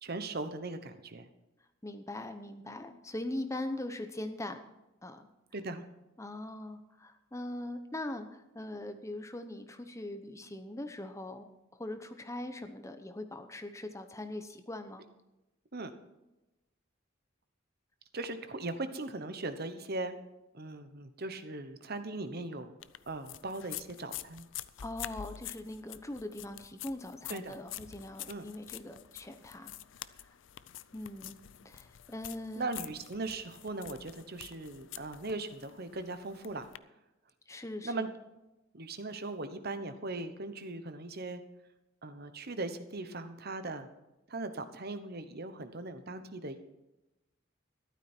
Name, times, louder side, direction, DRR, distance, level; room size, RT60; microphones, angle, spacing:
voice 1, 0.0-1.3 5.5-5.8 15.7-15.9 18.1-20.1 20.5-22.7 23.1-24.5 27.3-27.5 28.3-28.5 32.6-36.7 37.8-38.1 38.7-41.4 42.0-43.9 44.3-46.6, right 2 dB, 50° right, 10 dB, 1.1 m, -39 dB
voice 2, 1.8-4.6 5.0-5.3 6.2-11.5 11.7-15.0 24.8-29.8 30.2-30.3 30.9-31.4 31.6-32.7 37.5-38.1, left 1 dB, 15° left, 8 dB, 0.8 m, -41 dB
sound 1, 22.8-36.8, left 12 dB, 65° left, 0.5 m, -47 dB
14.0 x 12.0 x 4.5 m, 0.99 s
head